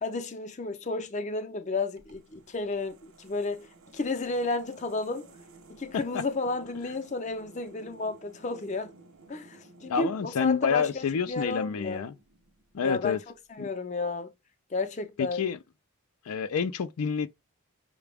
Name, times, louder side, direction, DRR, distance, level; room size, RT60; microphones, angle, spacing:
voice 1, 0.0-5.3 5.7-8.9 9.3-12.0 12.8-13.2 13.6-14.3 14.7-15.4, left 3 dB, 35° left, 0.5 m, -32 dB
sound 1, 2.0-13.0, right 3 dB, 75° right, 0.8 m, -55 dB
voice 2, 9.9-12.1 12.7-13.2 13.6-13.7 15.2-15.6 16.3-17.3, left 6 dB, 85° left, 0.4 m, -28 dB
5.8 x 2.1 x 3.4 m
head